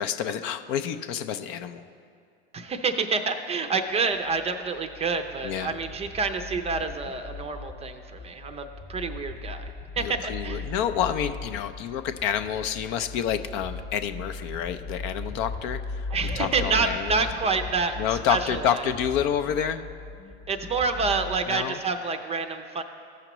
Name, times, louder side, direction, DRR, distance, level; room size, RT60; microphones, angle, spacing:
voice 1, 0.0-1.9 5.4-5.7 10.0-16.1 16.3-17.3 18.0-19.9 21.5-21.8, left 9 dB, 55° left, 10 dB, 0.5 m, -28 dB
voice 2, 2.5-10.7 16.1-18.0 18.3-18.8 20.5-22.8, right 4 dB, 20° right, 7 dB, 0.5 m, -28 dB
sound 1, 4.3-21.4, left 3 dB, 20° left, 0.9 m, -38 dB
15.0 x 5.8 x 3.0 m, 2.3 s
hypercardioid pair, 105°, 32 cm